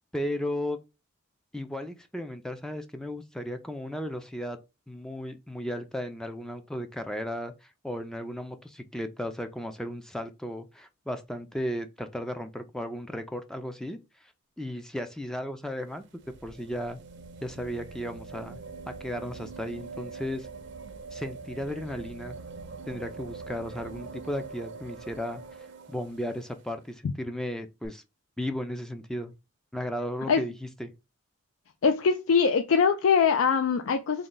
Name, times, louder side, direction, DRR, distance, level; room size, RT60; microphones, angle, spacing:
voice 1, 0.1-0.8 1.5-4.6 4.9-14.3 14.6-16.0 16.4-17.0 17.4-18.6 18.9-20.5 21.1-22.4 22.9-25.4 25.9-28.0 28.4-29.3 29.7-30.9, equal, 5° left, 0.3 m, -35 dB
sound 1, 15.7-26.6 27.8-27.9, right 4 dB, 60° right, 0.5 m, -43 dB
voice 2, 31.8-34.3, left 6 dB, 80° left, 0.4 m, -22 dB
3.6 x 2.2 x 3.8 m
head